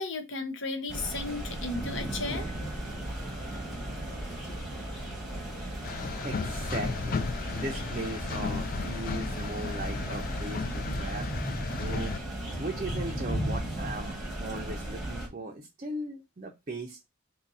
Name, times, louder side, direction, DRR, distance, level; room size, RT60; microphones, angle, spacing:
voice 1, 0.0-2.5, left 3 dB, 65° left, 0.8 m, -34 dB
sound 1, 0.9-15.3, right 1 dB, ahead, 1.0 m, -37 dB
sound 2, 1.6-13.9, equal, 25° left, 1.0 m, -39 dB
sound 3, 5.8-12.2, left 4 dB, 45° left, 0.3 m, -35 dB
voice 2, 6.2-12.1 12.6-17.1, right 2 dB, 35° right, 0.5 m, -38 dB
2.7 x 2.6 x 3.9 m
head